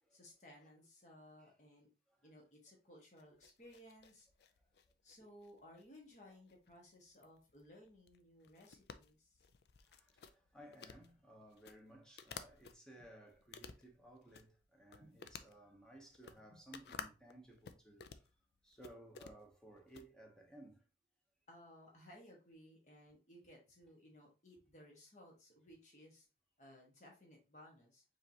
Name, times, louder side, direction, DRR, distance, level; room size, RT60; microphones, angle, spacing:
voice 1, 0.1-1.9 2.2-4.3 5.0-9.5 15.0-15.3 16.5-16.6 21.5-26.3 26.6-28.0, left 1 dB, 45° left, 1.6 m, -60 dB
sound 1, 3.2-12.7 13.3-14.6 14.9-20.0, left 6 dB, 65° left, 0.4 m, -54 dB
voice 2, 9.8-18.3 18.6-20.9, right 1 dB, 5° left, 0.9 m, -59 dB
4.9 x 3.2 x 2.8 m
head